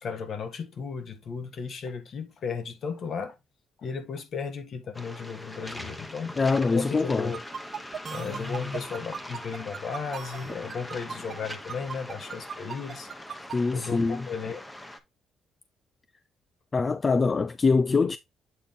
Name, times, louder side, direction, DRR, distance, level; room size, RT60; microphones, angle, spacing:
voice 1, 0.0-3.4 3.8-6.3 6.7-7.4 8.1-13.1 13.7-14.6, left 5 dB, 60° left, 1.5 m, -35 dB
Waves surf, 4.9-15.0, left 1 dB, 10° left, 1.1 m, -42 dB
voice 2, 6.4-7.3 13.5-14.3 16.7-18.2, left 4 dB, 30° left, 0.3 m, -24 dB
sound 1, 7.3-13.6, right 7 dB, 50° right, 1.2 m, -37 dB
8.4 x 3.9 x 3.6 m
cardioid pair, 90°, 0 cm